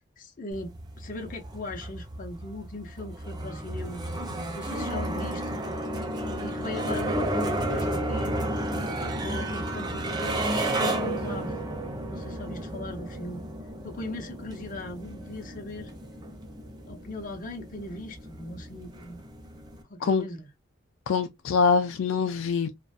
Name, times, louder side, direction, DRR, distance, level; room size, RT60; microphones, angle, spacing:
voice 1, 0.2-4.0 4.5-5.7 6.2-8.4 8.7-11.6 12.1-13.4 13.8-15.9 16.9-19.2 19.9-20.5, left 2 dB, 45° left, 0.6 m, -39 dB
sound 1, 0.5-19.8, right 1 dB, 20° right, 0.5 m, -32 dB
voice 2, 21.1-22.7, left 5 dB, 75° left, 0.3 m, -24 dB
2.5 x 2.1 x 2.3 m
head